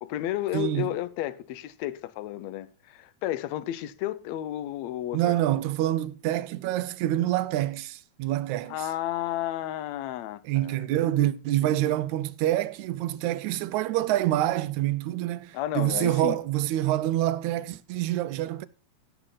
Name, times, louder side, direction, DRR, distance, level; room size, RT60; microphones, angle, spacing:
voice 1, 0.0-5.6 8.7-10.8 11.6-11.9 15.5-16.4, left 13 dB, 75° left, 1.8 m, -32 dB
voice 2, 0.5-0.9 5.1-8.9 10.4-18.7, right 14 dB, 80° right, 2.0 m, -26 dB
16.5 x 6.0 x 3.9 m
omnidirectional pair, 3.5 m